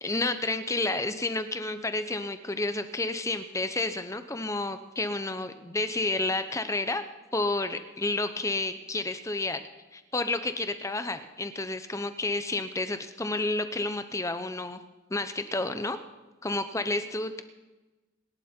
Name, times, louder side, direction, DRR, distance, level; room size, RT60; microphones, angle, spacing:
voice 1, 0.0-7.0 7.3-9.6 9.9-14.8 15.1-16.0 16.4-17.4, left 2 dB, 15° left, 10 dB, 0.8 m, -30 dB
27.0 x 11.5 x 4.5 m, 1.1 s
head